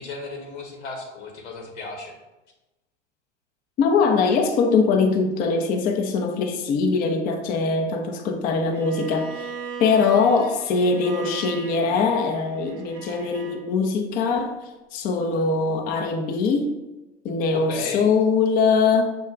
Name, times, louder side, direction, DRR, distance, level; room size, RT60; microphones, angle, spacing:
voice 1, 0.0-2.1 17.6-18.1, left 3 dB, 75° left, 1 dB, 1.1 m, -35 dB
voice 2, 3.8-16.7 17.2-19.0, left 4 dB, 25° left, 4 dB, 0.4 m, -22 dB
Bowed string instrument, 8.7-13.6, right 6 dB, 35° right, 0.6 m, -39 dB
5.7 x 2.1 x 3.6 m, 1.0 s
hypercardioid pair, 90°, 35 cm